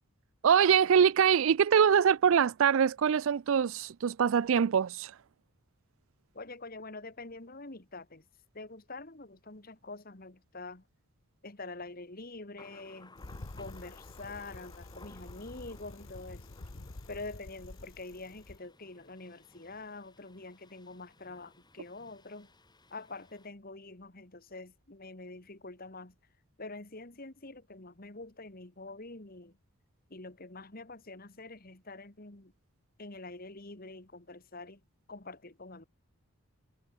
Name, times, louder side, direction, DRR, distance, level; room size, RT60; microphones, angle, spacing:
voice 1, 0.4-5.1, right 7 dB, 65° right, 0.4 m, -24 dB
voice 2, 6.3-8.2 8.5-10.8 11.4-13.1 13.6-16.5 17.1-22.5 22.9-26.1 26.6-29.6 30.1-32.5 33.0-34.8 35.1-35.8, left 3 dB, 40° left, 1.9 m, -46 dB
Thunder, 12.6-23.5, left 2 dB, 20° left, 6.6 m, -58 dB
Bicycle, 13.2-18.6, left 2 dB, 65° left, 1.2 m, -48 dB
head